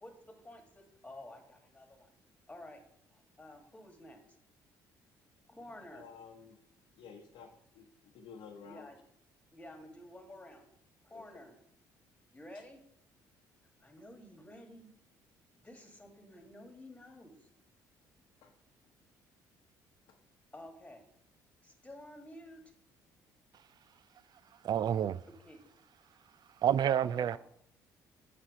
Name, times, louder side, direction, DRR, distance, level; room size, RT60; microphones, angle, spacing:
voice 1, 0.0-2.1 2.5-2.9 3.1-4.4 5.5-6.1 8.6-9.0 9.5-10.7 11.0-11.6 12.3-12.8 13.8-14.9 15.6-17.4 20.5-21.1 21.6-22.6 25.3-25.6 26.9-27.4, left 1 dB, 15° left, 1.8 m, -51 dB
voice 2, 5.9-6.6 7.0-7.5 7.7-7.9 8.1-8.9 11.1-11.2 18.4-18.5, left 6 dB, 70° left, 0.9 m, -51 dB
voice 3, 24.6-25.2 26.6-27.4, right 10 dB, 50° right, 0.3 m, -28 dB
7.4 x 4.3 x 5.4 m
hypercardioid pair, 60°, 9 cm